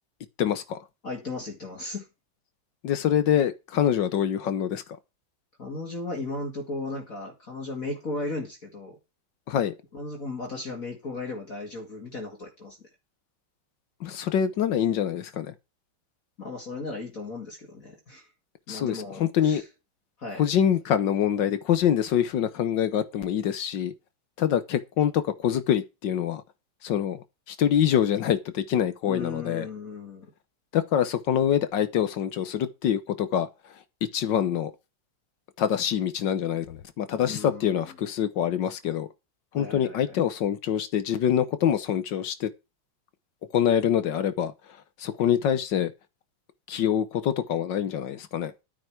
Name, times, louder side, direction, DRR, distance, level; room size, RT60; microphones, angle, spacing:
voice 1, 0.4-0.8 2.8-4.8 9.5-9.7 14.0-15.5 18.7-19.6 20.4-23.9 24.4-26.4 26.8-29.7 30.7-33.5 34.1-34.7 35.6-39.1 39.5-42.5 43.5-44.5 45.0-45.9 46.7-48.5, left 9 dB, 65° left, 1.5 m, -25 dB
voice 2, 1.0-2.1 5.6-9.0 9.9-12.9 16.4-18.3 18.7-19.6 20.2-20.4 29.1-30.3 37.2-37.8 39.5-40.1, left 3 dB, 40° left, 2.6 m, -36 dB
12.0 x 9.0 x 4.7 m
omnidirectional pair, 2.2 m